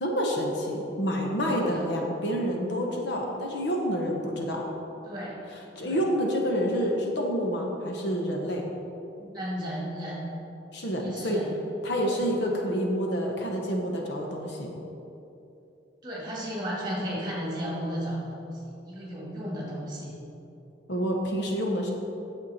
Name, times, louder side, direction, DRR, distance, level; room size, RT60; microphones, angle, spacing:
voice 1, 0.0-4.6 5.8-8.7 10.7-11.4 11.8-14.7 20.9-21.9, equal, 60° left, 0 dB, 1.1 m, -28 dB
voice 2, 5.1-5.4 5.8-6.0 9.2-10.2 11.0-11.5 12.2-12.3 16.0-20.1, equal, 20° right, -5 dB, 2.1 m, -34 dB
9.4 x 7.2 x 4.3 m, 2.9 s
head